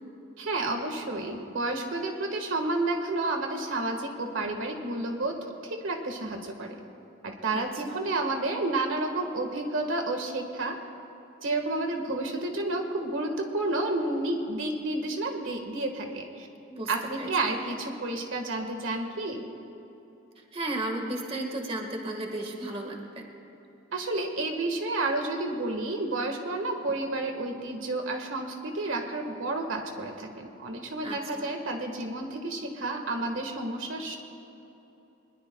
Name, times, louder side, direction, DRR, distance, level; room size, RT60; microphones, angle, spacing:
voice 1, 0.4-6.7 7.2-10.8 11.4-16.5 16.9-19.5 23.9-34.2, right 2 dB, 75° right, 4 dB, 1.6 m, -30 dB
voice 2, 7.5-8.0 16.7-16.9 17.2-17.5 20.5-23.3 31.0-31.5, right 1 dB, 30° right, 2 dB, 1.6 m, -34 dB
24.0 x 21.0 x 2.3 m, 3.0 s
head